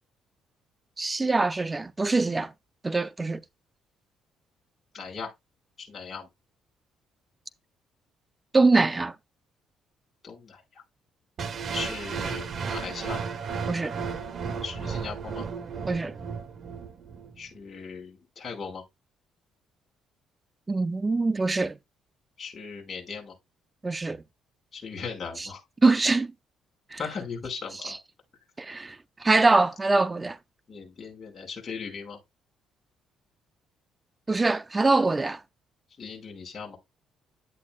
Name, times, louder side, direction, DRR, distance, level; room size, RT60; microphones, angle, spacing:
voice 1, 1.0-2.5 2.8-3.4 8.5-9.1 13.7-14.0 15.9-16.2 20.7-21.8 23.8-24.2 25.4-25.5 25.8-26.3 26.9-27.0 28.6-30.4 34.3-35.4, right 3 dB, 15° right, 0.4 m, -23 dB
voice 2, 4.9-5.3 5.8-6.3 10.2-10.8 11.7-13.3 14.6-15.4 17.4-18.8 22.4-23.3 24.7-25.6 27.0-28.0 30.7-32.2 36.0-36.8, left 5 dB, 35° left, 4.8 m, -38 dB
sound 1, 11.4-17.4, right 6 dB, 45° right, 1.0 m, -34 dB
10.5 x 8.1 x 2.3 m
cardioid pair, 125°, 0 cm